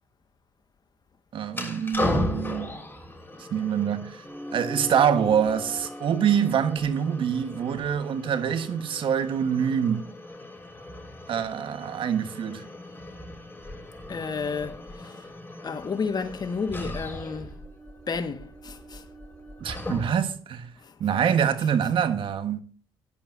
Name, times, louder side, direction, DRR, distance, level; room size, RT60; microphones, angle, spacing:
voice 1, 1.3-2.7 3.5-4.2 4.5-10.1 11.3-12.6 19.6-20.7 21.0-22.6, right 8 dB, 65° right, 1.4 m, -25 dB
sound 1, 1.5-20.4, left 1 dB, 20° left, 6.4 m, -37 dB
sound 2, 4.2-9.0, equal, 5° right, 3.9 m, -41 dB
voice 2, 14.1-15.1 15.6-17.5 18.1-19.0, left 5 dB, 45° left, 1.7 m, -31 dB
17.5 x 11.5 x 2.7 m
supercardioid pair, 60°, 9 cm